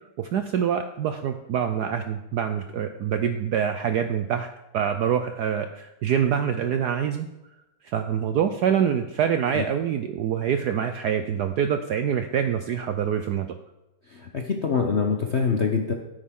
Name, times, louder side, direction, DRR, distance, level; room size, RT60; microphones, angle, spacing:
voice 1, 0.2-4.5 4.7-7.3 7.8-13.5, right 8 dB, 75° right, 8 dB, 0.9 m, -25 dB
voice 2, 14.1-15.9, left 5 dB, 55° left, 3 dB, 0.7 m, -24 dB
12.5 x 10.5 x 3.7 m, 0.96 s
omnidirectional pair, 2.3 m